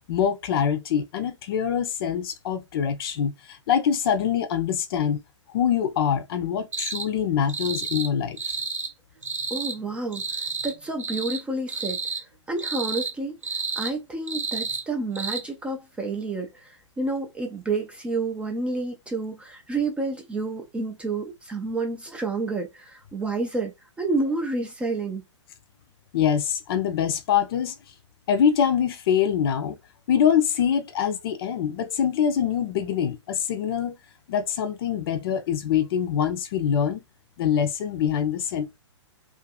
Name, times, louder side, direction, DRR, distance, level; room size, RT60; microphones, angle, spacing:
voice 1, 0.1-5.2 5.5-8.4 26.1-27.7 28.3-29.8 30.1-34.0 34.3-37.0 37.4-38.8, left 8 dB, 50° left, 0.6 m, -24 dB
sound 1, 6.7-7.1 7.5-8.1 8.4-8.9 9.2-9.8 10.1-10.7 11.0-11.4 11.7-12.2 12.6-13.1 13.4-13.9 14.3-14.8 15.1-15.4, right 4 dB, 85° right, 0.7 m, -31 dB
voice 2, 9.5-12.0 12.5-25.2, right 3 dB, 5° right, 0.3 m, -30 dB
2.5 x 2.5 x 2.4 m
hypercardioid pair, 120°, 16 cm